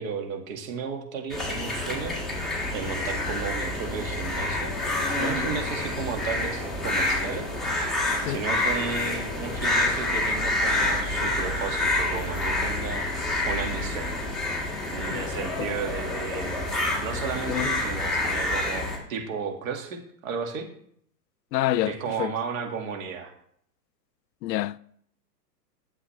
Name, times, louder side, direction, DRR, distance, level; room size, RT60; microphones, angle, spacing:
voice 1, 0.0-2.2 2.7-4.7 5.2-7.5 8.3-13.0 13.5-14.1 14.9-16.7 17.0-20.7 21.9-23.3, right 6 dB, 55° right, 2.0 m, -34 dB
sound 1, 1.3-19.0, left 2 dB, ahead, 1.7 m, -28 dB
voice 2, 21.5-21.9 22.2-22.3 24.4-24.8, left 14 dB, 85° left, 0.5 m, -26 dB
11.5 x 7.6 x 3.3 m
hypercardioid pair, 155°, 50 cm